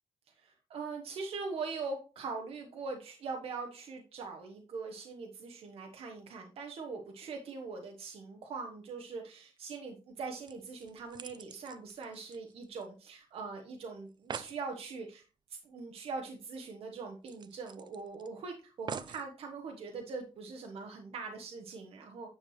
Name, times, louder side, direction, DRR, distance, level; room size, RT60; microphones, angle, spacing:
voice 1, 0.4-15.2 15.5-22.3, right 4 dB, 75° right, 3 dB, 1.0 m, -42 dB
sound 1, 10.1-10.2 10.5-13.1 13.4-13.5 13.8-13.9 14.1-14.6 16.1-16.2 16.5-16.6 17.3-18.3 18.9-19.3 20.0-20.1, right 7 dB, 50° right, 0.5 m, -45 dB
9.6 x 6.3 x 3.1 m, 0.34 s
cardioid pair, 110°, 10 cm